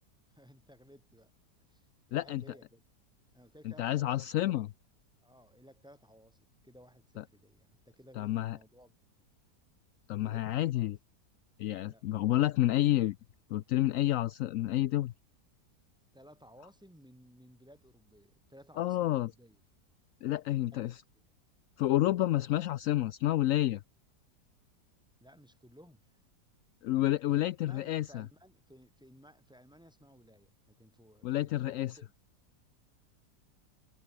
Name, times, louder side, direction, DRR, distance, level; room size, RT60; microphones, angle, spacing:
voice 1, 0.3-1.3 1.6-2.8 3.3-4.2 5.2-9.3 10.2-10.9 11.8-12.0 16.1-19.6 20.6-20.8 21.1-21.2 25.2-26.2 27.2-32.1, equal, ahead, 7.8 m, -58 dB
voice 2, 2.1-2.4 3.8-4.7 7.2-7.3 8.2-8.6 10.1-11.0 11.6-13.2 13.5-15.1 18.8-19.3 20.2-21.0 21.8-23.8 26.8-28.2 31.2-32.0, left 14 dB, 70° left, 0.7 m, -29 dB
omnidirectional pair, 1.8 m